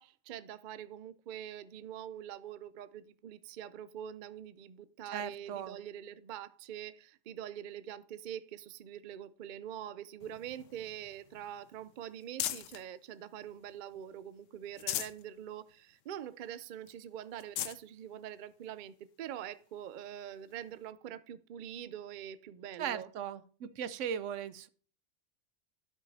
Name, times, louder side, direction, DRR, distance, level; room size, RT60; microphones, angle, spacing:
voice 1, 0.0-23.1, right 10 dB, 60° right, 0.5 m, -44 dB
voice 2, 5.1-5.8 22.8-24.7, right 8 dB, 80° right, 1.0 m, -38 dB
sound 1, 10.2-12.9 13.4-14.2 14.6-15.2 15.7-15.8 16.1-16.2 16.9-17.0 17.3-17.8 18.6-18.7 20.5-20.6, left 12 dB, 85° left, 1.0 m, -40 dB
12.5 x 5.5 x 2.7 m
omnidirectional pair, 1.3 m